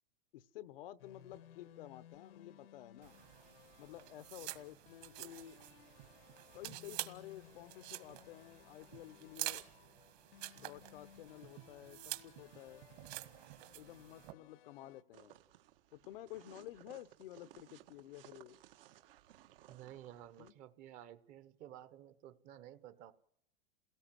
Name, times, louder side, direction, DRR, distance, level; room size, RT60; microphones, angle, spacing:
voice 1, 0.3-3.1 3.8-5.6 6.5-9.6 10.5-12.8 13.7-15.4 15.9-18.6 20.4-20.5, left 13 dB, 70° left, 14 dB, 0.9 m, -52 dB
sound 1, 1.0-15.0, left 9 dB, 90° left, 1.5 m, -62 dB
sound 2, 3.0-14.3, right 18 dB, 50° right, 1.7 m, -48 dB
sound 3, 15.1-20.5, right 13 dB, 70° right, 1.4 m, -61 dB
voice 2, 19.7-23.1, right 12 dB, 30° right, 14 dB, 0.9 m, -53 dB
28.5 x 18.0 x 7.6 m, 0.77 s
supercardioid pair, 175°, 29 cm